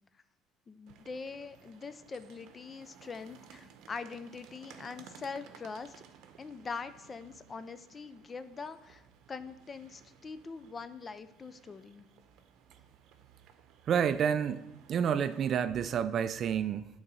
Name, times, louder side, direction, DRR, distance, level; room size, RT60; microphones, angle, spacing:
voice 1, 0.7-5.9 6.4-9.0 9.3-12.0, left 4 dB, 25° left, 0.4 m, -43 dB
sound 1, 0.9-15.6, right 7 dB, 70° right, 0.7 m, -58 dB
voice 2, 13.9-14.6 14.9-16.9, right 8 dB, 45° right, 0.3 m, -29 dB
8.6 x 3.9 x 5.4 m
cardioid pair, 120°, 0 cm